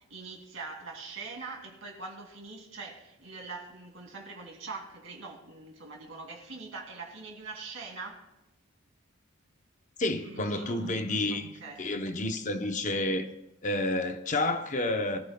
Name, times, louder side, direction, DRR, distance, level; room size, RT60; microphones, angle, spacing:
voice 1, 0.0-8.3 10.2-12.3, right 3 dB, 65° right, 2.4 m, -43 dB
voice 2, 10.0-11.5 11.8-13.3 13.6-15.3, left 2 dB, 35° left, 0.7 m, -30 dB
22.5 x 14.0 x 2.2 m
head